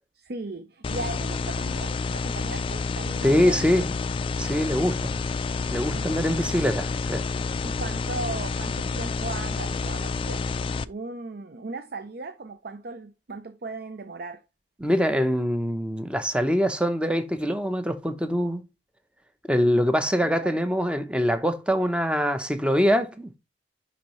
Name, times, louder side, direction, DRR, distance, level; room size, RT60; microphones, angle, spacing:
voice 1, 0.2-3.7 5.9-6.1 7.6-10.4 10.8-14.4 20.2-20.6, right 3 dB, 60° right, 0.6 m, -37 dB
sound 1, 0.8-10.8, left 4 dB, 30° left, 0.3 m, -29 dB
voice 2, 3.2-3.9 4.4-5.1 5.7-7.2 14.8-18.6 19.5-23.4, equal, 5° right, 0.7 m, -24 dB
10.0 x 4.2 x 3.1 m
head